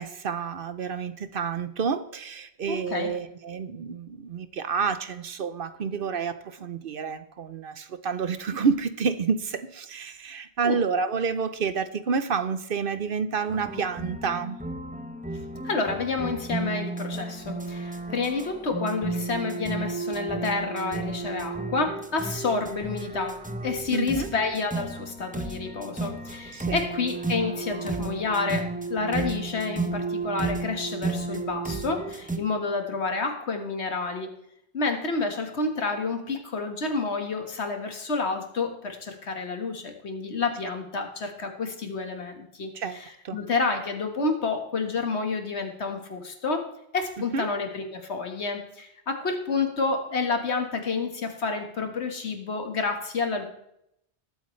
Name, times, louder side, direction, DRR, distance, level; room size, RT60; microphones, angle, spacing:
voice 1, 0.0-14.6 23.9-24.3 26.5-26.8 42.7-43.4 47.3-47.5, right 5 dB, 60° right, 12 dB, 0.9 m, -29 dB
voice 2, 2.7-3.1 10.6-10.8 15.6-34.3 34.7-53.4, left 4 dB, 80° left, 5 dB, 1.9 m, -29 dB
sound 1, 13.5-32.4, right 3 dB, 10° right, 0.7 m, -33 dB
20.5 x 8.2 x 3.2 m, 0.78 s
omnidirectional pair, 1.1 m